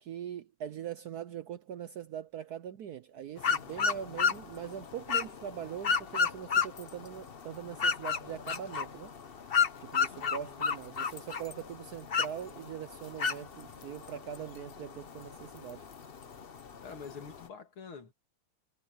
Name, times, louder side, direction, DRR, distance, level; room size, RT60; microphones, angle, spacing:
voice 1, 0.0-9.1 9.8-15.8, right 9 dB, 65° right, 1.0 m, -42 dB
sound 1, 3.4-17.5, left 6 dB, 45° left, 0.8 m, -34 dB
voice 2, 10.1-10.6 16.8-18.1, left 5 dB, 80° left, 3.3 m, -47 dB
omnidirectional pair, 2.3 m